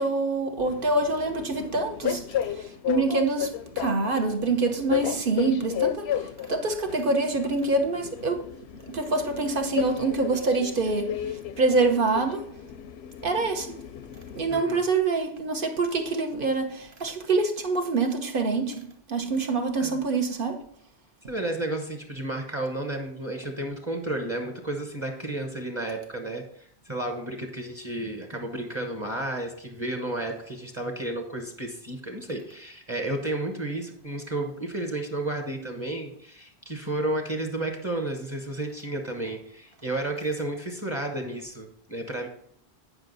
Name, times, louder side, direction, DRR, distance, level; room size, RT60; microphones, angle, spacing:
voice 1, 0.0-2.2 2.9-6.1 6.5-8.4 8.9-11.1 11.6-12.4 13.2-13.7 14.4-20.6, right 3 dB, 60° right, 1.2 m, -25 dB
Train, 0.6-14.6, left 10 dB, 80° left, 0.8 m, -34 dB
voice 2, 14.5-14.9 19.8-20.0 21.3-42.3, right 1 dB, 30° right, 1.2 m, -32 dB
9.6 x 5.5 x 4.0 m
omnidirectional pair, 1.0 m